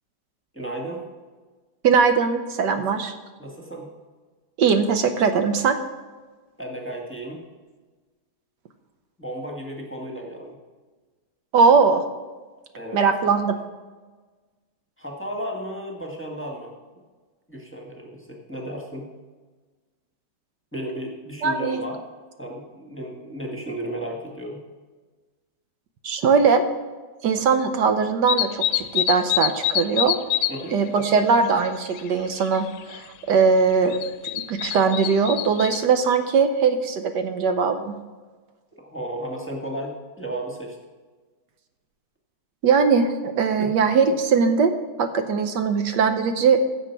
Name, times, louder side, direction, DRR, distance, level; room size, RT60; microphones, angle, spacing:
voice 1, 0.5-1.1 2.7-2.9 3.4-3.9 6.6-7.4 9.2-10.6 12.7-13.0 15.0-16.7 17.5-19.1 20.7-22.0 22.4-24.6 30.5-30.8 38.8-40.8 43.6-43.7, right 1 dB, 10° left, -1 dB, 1.4 m, -34 dB
voice 2, 1.8-3.1 4.6-5.8 11.5-12.0 12.9-13.6 21.4-21.8 26.0-26.6 27.2-30.1 30.7-34.0 34.3-37.9 42.6-44.7 45.0-46.8, right 5 dB, 75° right, 8 dB, 1.4 m, -20 dB
sound 1, 28.3-30.6 30.9-32.1 32.4-33.0 33.9-35.8, left 12 dB, 80° left, 1.2 m, -25 dB
16.0 x 6.9 x 4.6 m, 1.3 s
omnidirectional pair, 1.9 m